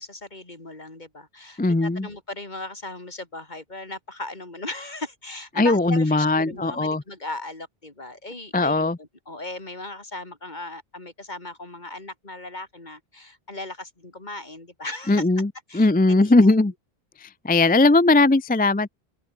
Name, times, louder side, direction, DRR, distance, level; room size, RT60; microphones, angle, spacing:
voice 1, 0.0-15.3 15.7-16.7, left 2 dB, 45° left, 3.3 m, -37 dB
voice 2, 1.6-2.1 5.6-7.0 8.5-8.9 15.1-15.5 15.7-16.7 17.4-18.9, left 2 dB, 15° left, 0.4 m, -19 dB
open air
omnidirectional pair, 1.1 m